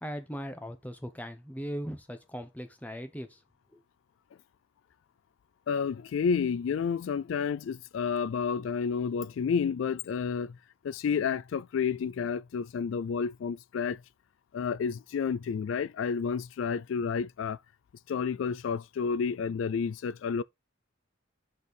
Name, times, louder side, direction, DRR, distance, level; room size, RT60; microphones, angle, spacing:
voice 1, 0.0-3.4 3.7-3.8, equal, 10° left, 0.9 m, -39 dB
voice 2, 5.7-10.6 10.8-14.0 14.5-17.6 18.1-20.4, left 6 dB, 80° left, 0.3 m, -30 dB
6.4 x 4.2 x 5.2 m
head